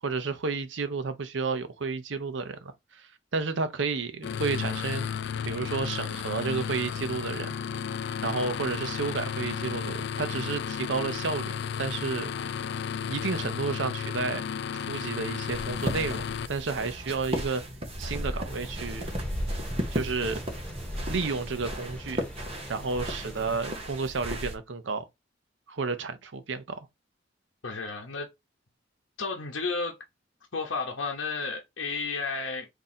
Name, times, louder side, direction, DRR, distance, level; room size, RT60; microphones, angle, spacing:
voice 1, 0.0-5.1 5.5-7.6 8.2-12.3 13.0-14.5 14.7-17.6 18.0-19.1 19.9-20.4 21.1-22.3 22.7-25.1 25.7-26.9, right 4 dB, 75° right, 0.6 m, -31 dB
sound 1, 4.2-16.5, left 7 dB, 65° left, 0.3 m, -33 dB
sound 2, 15.5-24.6, equal, 30° right, 0.9 m, -34 dB
sound 3, 18.5-23.6, equal, 5° left, 0.7 m, -45 dB
voice 2, 27.6-28.3 29.2-30.0 30.5-32.7, left 4 dB, 85° left, 0.8 m, -32 dB
3.7 x 2.7 x 4.2 m
head